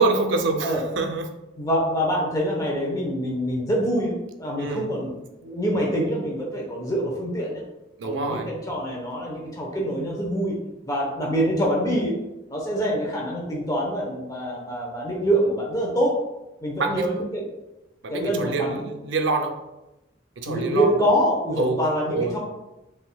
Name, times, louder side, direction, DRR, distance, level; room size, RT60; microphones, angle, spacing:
voice 1, 0.0-1.3 4.6-4.9 8.0-8.5 16.8-17.1 18.0-19.6 20.4-20.9 21.6-21.8 22.1-22.3, right 3 dB, 70° right, 5 dB, 0.5 m, -25 dB
voice 2, 1.6-5.1 5.4-7.6 8.0-10.5 10.8-12.1 12.5-16.1 16.6-17.4 18.1-18.9 20.5-22.4, equal, 20° left, -2 dB, 0.9 m, -25 dB
5.0 x 3.6 x 2.3 m, 0.97 s
head